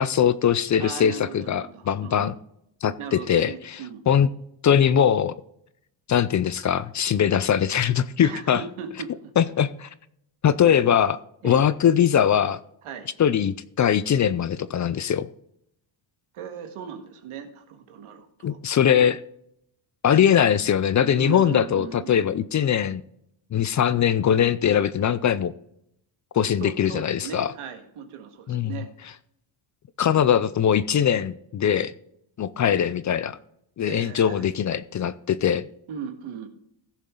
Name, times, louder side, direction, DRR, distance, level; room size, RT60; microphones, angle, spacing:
voice 1, 0.0-2.3 2.8-3.8 4.1-4.3 4.6-5.3 6.1-8.6 9.4-9.9 10.4-11.2 11.4-12.6 13.2-15.3 18.4-19.2 20.0-23.0 23.5-25.5 26.3-27.5 28.5-28.8 30.0-31.9 32.4-33.4 33.8-35.7, left 9 dB, 40° left, 16 dB, 0.5 m, -21 dB
voice 2, 0.8-2.3 3.0-4.0 8.2-9.3 11.4-11.7 12.8-13.1 16.3-18.6 21.1-22.2 26.6-29.1 33.8-34.5 35.9-36.5, right 7 dB, 80° right, 6 dB, 1.9 m, -38 dB
16.0 x 7.2 x 3.8 m, 0.74 s
cardioid pair, 135°, 50 cm